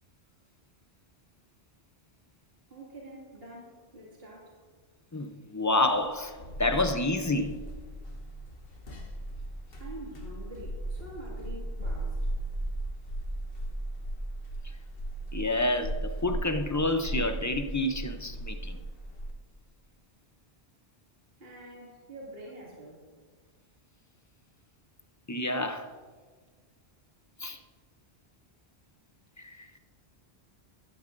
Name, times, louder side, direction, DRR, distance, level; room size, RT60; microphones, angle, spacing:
voice 1, 2.7-4.6 9.8-12.3 21.4-23.1, right 1 dB, 65° right, -5 dB, 2.6 m, -46 dB
voice 2, 5.1-7.6 15.3-18.8 25.3-25.9 27.4-27.6 29.4-29.8, left 2 dB, 20° left, 7 dB, 0.5 m, -29 dB
sound 1, 5.8-19.3, right 1 dB, 60° left, 1.4 m, -36 dB
15.5 x 12.0 x 2.6 m, 1.5 s
omnidirectional pair, 1.1 m